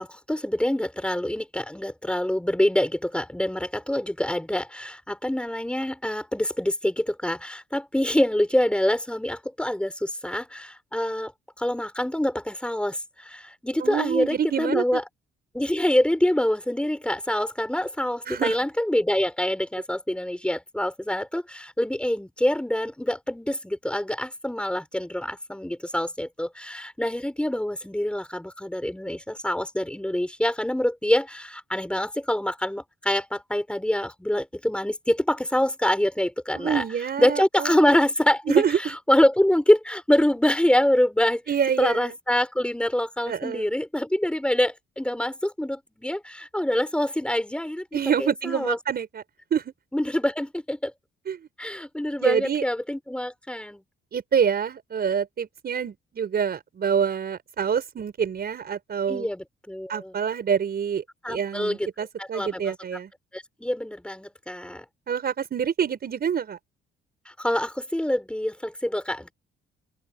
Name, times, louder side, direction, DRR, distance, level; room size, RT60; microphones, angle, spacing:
voice 1, 0.0-11.3 11.6-15.0 15.5-36.8 37.2-38.6 39.1-41.4 41.8-48.8 49.9-50.9 51.6-53.8 59.1-60.1 61.2-61.9 62.2-62.6 63.3-64.8 67.4-69.3, left 1 dB, 5° left, 6.2 m, -25 dB
voice 2, 13.8-15.0 18.3-18.6 36.6-38.0 38.5-38.9 41.5-42.1 43.3-43.7 47.9-49.2 49.5-49.6 51.3-51.5 52.2-52.6 54.1-59.3 59.9-63.1 65.1-66.6, right 7 dB, 50° right, 5.4 m, -26 dB
open air
cardioid pair, 90°, 20 cm